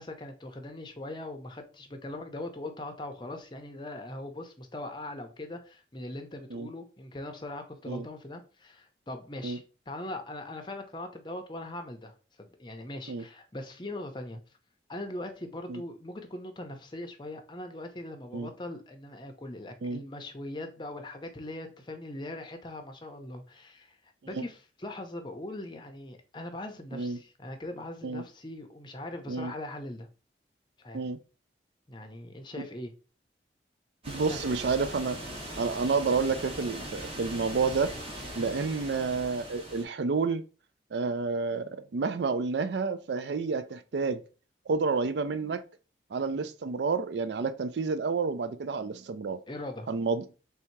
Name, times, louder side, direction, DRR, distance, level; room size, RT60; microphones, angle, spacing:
voice 1, 0.0-14.4 14.9-30.1 30.8-31.0 31.9-32.9 34.3-34.4 38.4-38.5 46.3-46.5 49.5-49.9, left 1 dB, 25° left, 0.6 m, -41 dB
sound 1, 34.0-39.8, right 1 dB, 30° right, 1.2 m, -40 dB
voice 2, 34.1-35.2 35.6-37.9 38.4-40.4 40.9-44.2 44.7-45.6 46.1-49.4 49.9-50.2, right 4 dB, 75° right, 0.4 m, -29 dB
3.4 x 2.8 x 4.4 m
head